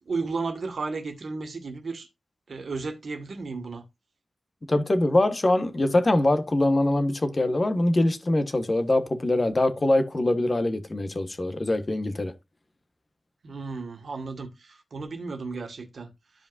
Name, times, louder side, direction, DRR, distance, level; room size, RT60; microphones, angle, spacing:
voice 1, 0.1-2.1 2.5-3.8 13.4-16.1, right 4 dB, 60° right, 1.9 m, -33 dB
voice 2, 4.7-12.3, left 1 dB, 30° left, 1.3 m, -23 dB
13.5 x 5.0 x 2.6 m
wide cardioid pair, 120°, 0 cm